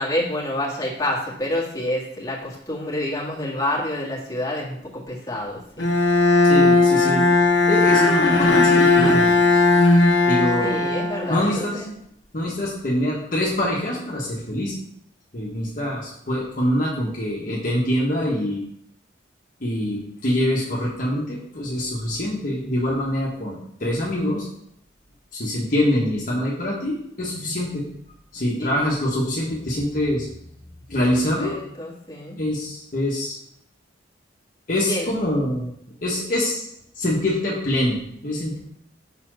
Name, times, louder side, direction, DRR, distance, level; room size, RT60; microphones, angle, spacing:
voice 1, 0.0-5.9 10.6-11.9 28.6-28.7 31.1-32.4 34.9-35.1, left 1 dB, 20° left, -6 dB, 1.9 m, -28 dB
Bowed string instrument, 5.8-11.8, left 3 dB, 75° left, 1.2 m, -17 dB
voice 2, 6.4-7.2 7.7-9.3 10.2-10.8 11.3-11.8 12.3-14.8 15.3-18.6 19.6-24.5 25.3-27.8 28.3-30.3 30.9-31.5 32.4-33.4 34.7-35.7 36.0-36.7 36.9-38.6, left 1 dB, 45° left, -4 dB, 1.4 m, -24 dB
6.0 x 4.2 x 6.3 m, 0.75 s
head